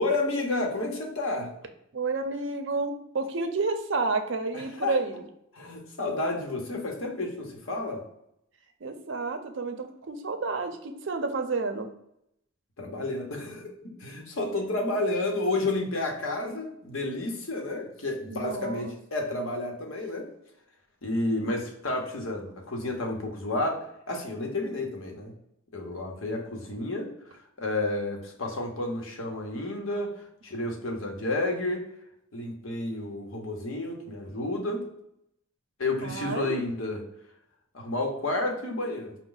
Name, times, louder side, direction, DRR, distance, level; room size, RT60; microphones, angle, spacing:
voice 1, 0.0-1.5 4.8-5.0 5.5-8.0 12.8-20.3 21.0-25.3 25.7-31.8 32.3-34.8 35.8-37.0 37.7-39.2, left 2 dB, 85° left, 2 dB, 0.9 m, -31 dB
voice 2, 1.9-5.2 8.8-11.9 18.3-18.9 26.4-26.5 36.0-36.6, right 3 dB, 60° right, 6 dB, 0.5 m, -30 dB
5.1 x 2.2 x 3.8 m, 0.77 s
head